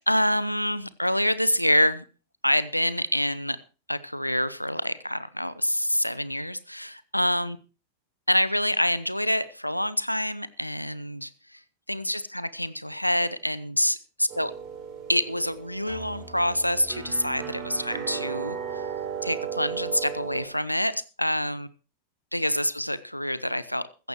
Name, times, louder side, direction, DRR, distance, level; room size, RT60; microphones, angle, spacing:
voice 1, 0.0-2.0 2.4-3.6 3.9-7.6 8.3-11.6 11.9-14.5 15.1-18.6 19.2-21.7 22.3-24.1, equal, 90° left, 17 dB, 0.7 m, -26 dB
sound 1, 14.3-20.5, right 7 dB, 40° right, 4.2 m, -35 dB
15.5 x 14.0 x 3.1 m, 0.34 s
figure-of-eight pair, 90°, 0 cm